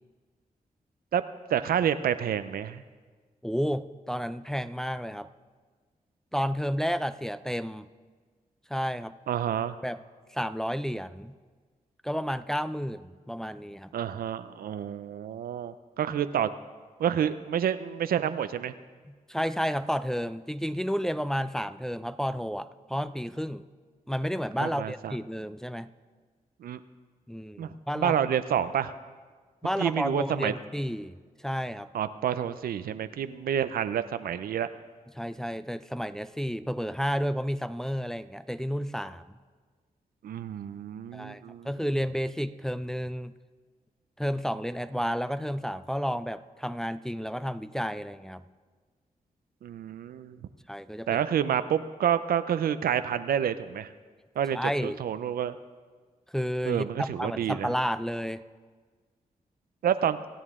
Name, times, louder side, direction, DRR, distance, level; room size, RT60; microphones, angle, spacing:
voice 1, 1.5-2.8 9.3-9.8 13.9-16.5 17.0-18.7 24.6-25.2 26.6-26.8 27.6-27.7 28.0-28.9 29.8-30.5 31.9-34.7 40.2-41.7 49.6-50.4 51.1-53.9 54.4-55.5 56.7-57.7 59.8-60.2, right 9 dB, 90° right, 12 dB, 0.5 m, -28 dB
voice 2, 3.4-5.3 6.3-7.9 8.7-9.1 9.8-10.0 10.3-11.3 12.0-13.9 19.1-23.6 24.1-25.9 27.3-28.2 29.6-31.2 31.4-31.9 35.2-39.3 41.1-43.3 44.2-48.4 50.7-51.2 54.5-55.0 56.3-58.4, equal, 5° left, 11 dB, 0.6 m, -31 dB
25.0 x 8.9 x 3.7 m, 1.5 s
cardioid pair, 55°, 15 cm